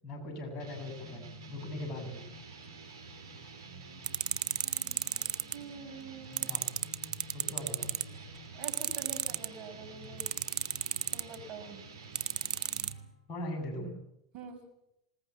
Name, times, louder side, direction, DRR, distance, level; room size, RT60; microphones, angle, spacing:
voice 1, 0.0-1.2 1.5-2.2 4.6-5.3 6.3-6.7 7.3-7.9 8.2-8.3 13.3-14.0, left 1 dB, 40° left, 6 dB, 7.5 m, -41 dB
sound 1, 0.6-13.1, right 3 dB, 75° right, 4.7 m, -48 dB
sound 2, 4.0-5.5 6.4-8.0 8.6-9.5 10.2-11.4 12.2-12.9, right 9 dB, 30° right, 0.8 m, -31 dB
voice 2, 5.5-6.5 8.5-10.3 11.1-11.8 14.3-14.6, right 5 dB, 50° right, 7 dB, 6.2 m, -45 dB
20.5 x 19.5 x 8.5 m, 0.81 s
hypercardioid pair, 95°, 3 cm